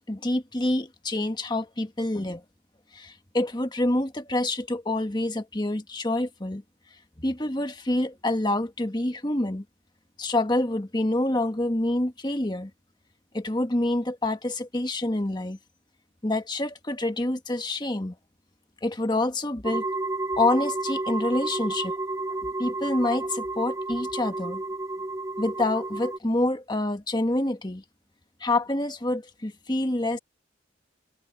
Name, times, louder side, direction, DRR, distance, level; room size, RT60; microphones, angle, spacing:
voice 1, 0.1-2.4 2.9-6.6 7.2-9.6 10.2-12.7 13.3-15.6 16.2-18.1 18.8-19.8 20.4-21.9 22.6-24.6 25.4-27.8 28.4-30.2, left 1 dB, 20° left, 1.3 m, -27 dB
sound 1, 19.6-26.2, right 2 dB, 15° right, 0.4 m, -31 dB
head